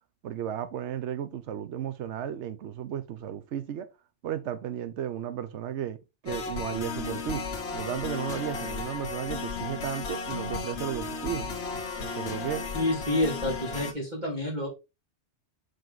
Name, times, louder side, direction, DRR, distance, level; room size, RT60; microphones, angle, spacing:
voice 1, 0.2-3.9 4.2-6.0 6.2-7.4 7.7-11.5 12.0-12.7, right 10 dB, 80° right, 1.0 m, -34 dB
sound 1, 6.3-13.9, left 4 dB, 65° left, 1.2 m, -34 dB
voice 2, 12.7-14.7, left 1 dB, 40° right, 2.2 m, -28 dB
5.9 x 5.2 x 3.8 m
omnidirectional pair, 1.2 m